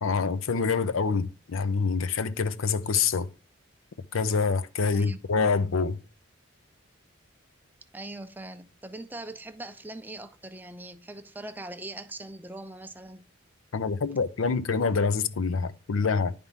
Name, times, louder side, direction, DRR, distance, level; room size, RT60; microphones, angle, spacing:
voice 1, 0.0-3.3 4.1-6.0 13.7-16.3, left 5 dB, 85° left, 0.6 m, -26 dB
voice 2, 4.9-5.2 7.9-13.2, right 2 dB, 10° right, 0.5 m, -41 dB
10.5 x 3.4 x 5.5 m
head